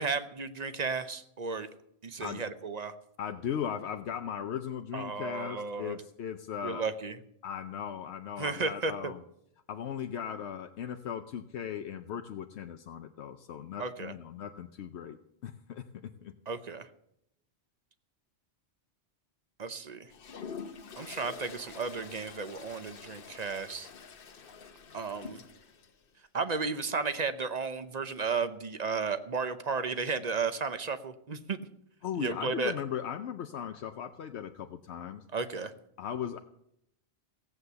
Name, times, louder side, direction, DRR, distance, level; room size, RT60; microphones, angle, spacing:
voice 1, 0.0-1.7 2.0-2.9 4.9-6.0 6.6-7.2 8.4-9.1 13.8-14.1 16.5-16.9 19.6-20.1 21.0-23.9 24.9-25.4 26.3-31.6 32.2-32.7 35.3-35.7, right 4 dB, 40° right, 11 dB, 0.9 m, -33 dB
voice 2, 3.2-6.8 7.4-9.2 9.7-15.2 15.4-16.3 32.0-35.2 36.0-36.4, left 8 dB, 80° left, 7 dB, 1.0 m, -38 dB
Toilet flush, 20.1-25.9, left 6 dB, 60° left, 1.0 m, -46 dB
16.0 x 8.1 x 6.9 m, 0.76 s
omnidirectional pair, 1.1 m